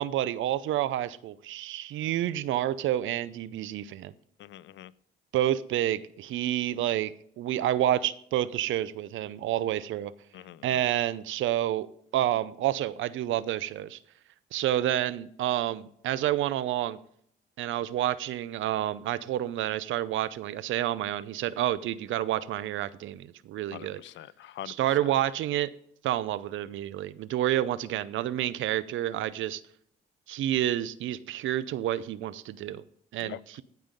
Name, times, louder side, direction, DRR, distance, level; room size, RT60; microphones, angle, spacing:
voice 1, 0.0-4.1 5.3-10.1 10.6-11.9 12.1-14.0 14.5-17.0 17.6-24.0 24.7-25.7 26.0-29.6 30.3-32.8 33.1-33.6, right 12 dB, 75° right, 0.6 m, -29 dB
voice 2, 4.4-4.9 10.3-10.8 23.7-24.9 33.2-33.4, left 13 dB, 70° left, 0.5 m, -44 dB
15.0 x 5.5 x 5.2 m
cardioid pair, 90°, 20 cm